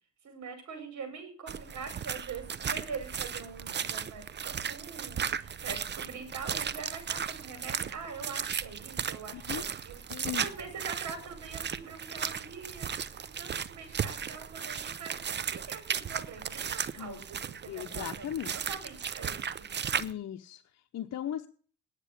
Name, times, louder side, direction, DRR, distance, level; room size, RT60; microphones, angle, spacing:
voice 1, 0.2-18.3 18.7-19.7, right 5 dB, 65° right, 7 dB, 5.7 m, -43 dB
sound 1, 1.5-20.1, right 7 dB, 35° right, 0.7 m, -36 dB
voice 2, 9.3-9.6 10.1-10.5 17.0-17.2 17.7-18.5 20.0-20.6 20.9-21.5, left 11 dB, 60° left, 4 dB, 0.9 m, -37 dB
9.9 x 8.3 x 8.2 m, 0.43 s
cardioid pair, 90°, 30 cm